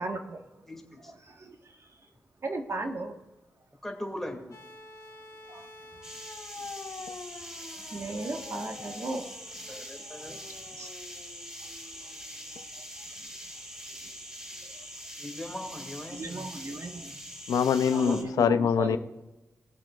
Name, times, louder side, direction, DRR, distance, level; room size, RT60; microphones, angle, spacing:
voice 1, 0.0-0.7 1.0-1.6 2.4-3.2 5.5-5.7 7.8-9.3 9.6-9.7 10.8-10.9 12.5-12.8 16.1-17.1 17.9-19.0, right 2 dB, 50° right, 4 dB, 1.4 m, -36 dB
voice 2, 0.7-1.1 3.8-4.6 9.5-10.4 15.2-16.5 17.9-18.2, left 1 dB, 5° left, 2 dB, 2.3 m, -40 dB
sound 1, 4.5-12.6 13.9-14.0, left 3 dB, 60° left, 2.1 m, -47 dB
sound 2, 6.0-18.2, equal, 10° right, 2.2 m, -43 dB
voice 3, 17.5-19.0, left 7 dB, 85° left, 12 dB, 0.5 m, -24 dB
21.0 x 7.5 x 2.4 m, 1.0 s
cardioid pair, 70°, 6 cm